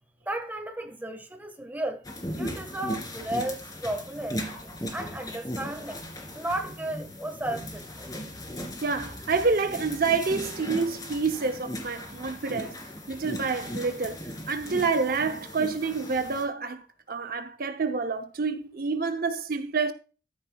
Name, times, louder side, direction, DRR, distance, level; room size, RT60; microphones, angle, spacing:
voice 1, 0.2-2.0 2.4-4.4 4.9-6.0 6.3-8.1, right 1 dB, 10° right, 1.4 m, -34 dB
sound 1, 2.0-16.4, equal, 20° left, 2.4 m, -38 dB
voice 2, 8.8-12.7 13.1-19.9, right 4 dB, 55° right, 0.7 m, -28 dB
13.5 x 10.0 x 2.3 m
head